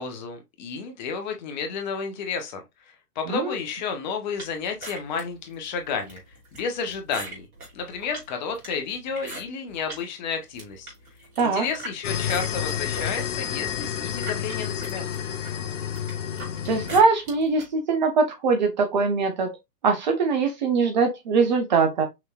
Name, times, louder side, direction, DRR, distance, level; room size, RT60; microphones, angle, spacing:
voice 1, 0.0-6.2 6.5-7.5 7.7-10.9 11.4-15.1, left 5 dB, 30° left, 0.9 m, -31 dB
sound 1, 4.4-10.0 10.4-11.9 12.3-17.7, right 2 dB, 65° right, 2.9 m, -41 dB
sound 2, 12.0-17.0, left 9 dB, 50° left, 0.7 m, -30 dB
voice 2, 16.7-19.5 19.8-22.0, right 4 dB, 30° right, 0.7 m, -22 dB
5.8 x 2.9 x 2.3 m
figure-of-eight pair, 115°, 47 cm